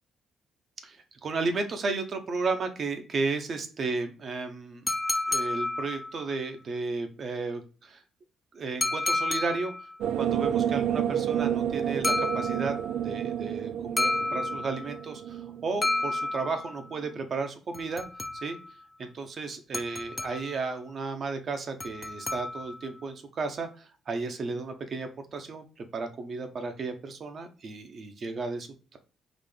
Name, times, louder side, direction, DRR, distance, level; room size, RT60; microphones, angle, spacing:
voice 1, 0.8-4.8 5.3-8.0 8.5-9.7 10.2-12.7 13.0-18.0 18.4-18.6 19.0-29.0, right 4 dB, 45° right, 6 dB, 0.8 m, -33 dB
sound 1, 4.9-6.3 8.8-10.0 12.0-12.9 14.0-15.0 15.8-16.8 17.7-18.7 19.7-20.7 21.8-22.9, left 2 dB, 20° left, 0.6 m, -31 dB
sound 2, 10.0-16.4, right 9 dB, 80° right, 0.3 m, -30 dB
4.0 x 2.5 x 3.3 m, 0.37 s
cardioid pair, 125°, 0 cm